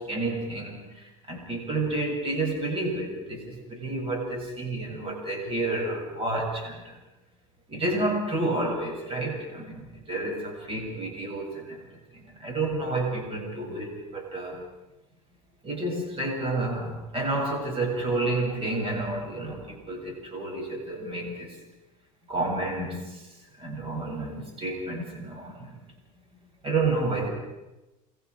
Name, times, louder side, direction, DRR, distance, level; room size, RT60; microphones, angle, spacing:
voice 1, 0.0-7.0 7.7-11.8 12.1-14.6 15.6-21.6 22.3-23.3 23.6-25.8 26.6-27.3, right 2 dB, 30° right, 1 dB, 7.7 m, -30 dB
29.0 x 22.0 x 4.9 m, 1.0 s
supercardioid pair, 90°, 19 cm